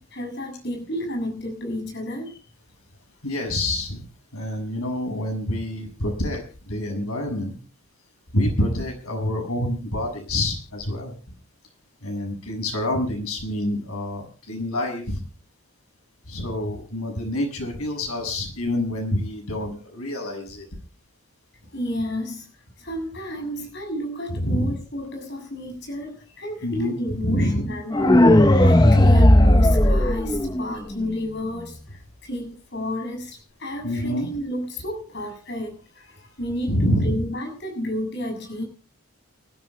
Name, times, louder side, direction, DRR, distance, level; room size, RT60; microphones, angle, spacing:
voice 1, 0.1-2.4 21.7-22.5 22.8-38.6, left 1 dB, 50° left, 3 dB, 7.0 m, -31 dB
voice 2, 3.2-4.1 4.3-7.6 8.3-11.2 12.0-15.2 16.3-20.6 24.3-24.7 26.6-27.0 27.2-27.7 33.8-34.3 36.7-37.2, left 1 dB, 90° left, 3 dB, 6.4 m, -27 dB
sound 1, 27.9-30.9, left 1 dB, 20° left, 0.8 m, -15 dB
29.5 x 13.5 x 2.2 m, 0.37 s
head